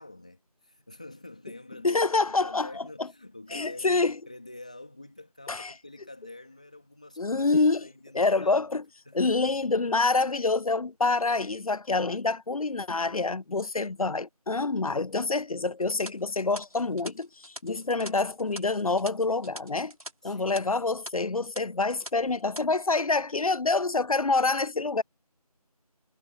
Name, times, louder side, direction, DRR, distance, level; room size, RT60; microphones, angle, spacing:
voice 1, 0.0-8.7 9.1-9.6 20.2-20.9, left 2 dB, 10° left, 2.3 m, -47 dB
voice 2, 1.8-2.8 3.5-4.2 5.5-5.7 7.2-7.9 8.1-8.8 9.1-17.3 17.6-19.9 20.2-25.0, left 3 dB, 65° left, 0.5 m, -26 dB
sound 1, 15.8-20.1 20.4-20.6 21.0-21.1 21.5-22.1 22.4-22.6, right 1 dB, 65° right, 5.1 m, -43 dB
figure-of-eight pair, 180°, 20 cm